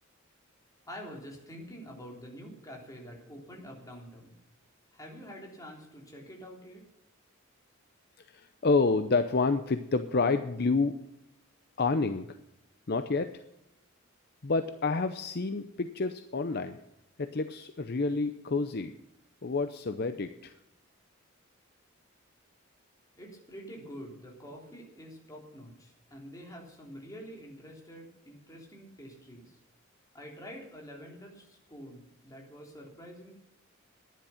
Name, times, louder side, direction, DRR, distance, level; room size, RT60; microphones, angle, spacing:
voice 1, 0.8-4.4 4.9-6.8 23.2-29.6 30.1-33.3, equal, 15° left, -1 dB, 3.4 m, -47 dB
voice 2, 8.3-11.0 11.8-12.3 12.9-13.4 14.4-16.8 17.2-18.9 19.4-20.5, left 3 dB, 50° left, 9 dB, 0.7 m, -29 dB
12.5 x 10.5 x 5.7 m, 0.85 s
head